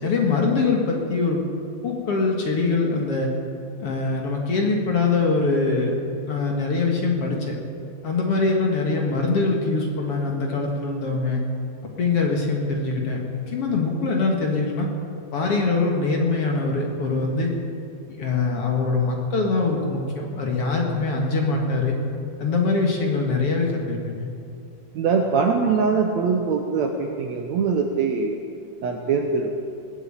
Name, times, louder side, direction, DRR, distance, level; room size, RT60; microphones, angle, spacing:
voice 1, 0.0-1.4 1.8-3.3 3.8-6.0 6.3-7.5 8.0-11.4 11.8-14.9 15.3-17.5 18.2-21.9 22.4-24.3, left 3 dB, 50° left, 0 dB, 2.2 m, -23 dB
voice 2, 24.9-28.4 28.8-29.6, right 5 dB, 70° right, 3 dB, 1.8 m, -22 dB
20.0 x 8.1 x 8.9 m, 2.5 s
omnidirectional pair, 4.1 m